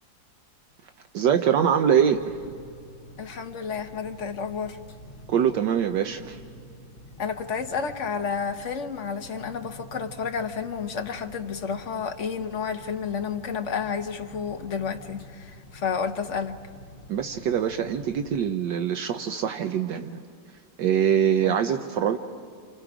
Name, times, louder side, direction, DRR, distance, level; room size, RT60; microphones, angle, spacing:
voice 1, 1.1-2.4 5.3-6.4 17.1-20.2 20.8-22.2, right 8 dB, 70° right, 1.4 m, -23 dB
sound 1, 2.1-18.5, left 1 dB, 75° left, 2.9 m, -47 dB
voice 2, 3.2-4.8 7.2-16.6 21.4-21.6, left 6 dB, 45° left, 1.2 m, -31 dB
30.0 x 28.0 x 5.0 m
omnidirectional pair, 2.0 m